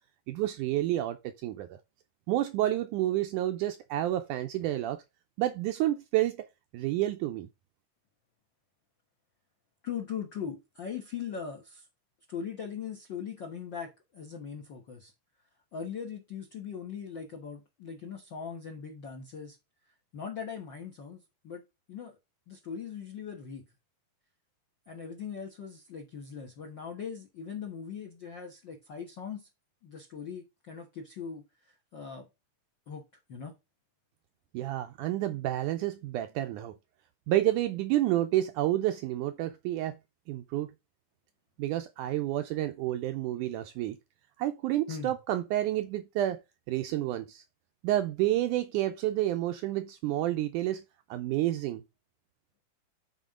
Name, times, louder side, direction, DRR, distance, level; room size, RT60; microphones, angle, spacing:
voice 1, 0.3-1.8 2.3-5.0 5.4-6.5 6.7-7.5 34.5-36.7 37.3-40.0 40.3-40.7 41.6-44.0 44.4-46.4 46.7-47.4 47.8-50.8 51.1-51.8, right 14 dB, 80° right, 1.8 m, -29 dB
voice 2, 9.8-11.8 12.3-15.1 15.7-19.6 20.1-21.6 21.9-22.2 22.5-23.6 24.9-29.5 29.8-31.4 31.9-32.3 32.9-33.0 33.3-33.5 44.9-45.1, left 7 dB, 65° left, 1.1 m, -40 dB
9.6 x 4.5 x 3.7 m
omnidirectional pair, 4.1 m